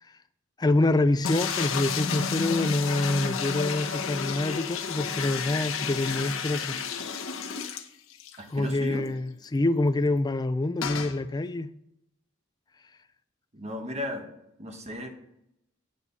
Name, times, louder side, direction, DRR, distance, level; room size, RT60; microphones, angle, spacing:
voice 1, 0.6-6.8 8.5-11.7, left 2 dB, 20° left, 0.4 m, -26 dB
sound 1, 1.2-8.4 8.7-8.8 9.1-9.2 10.8-11.2, left 6 dB, 85° left, 0.9 m, -31 dB
voice 2, 8.4-9.0 13.5-14.3 14.6-15.1, left 1 dB, 35° right, 1.4 m, -35 dB
8.9 x 8.0 x 4.1 m
head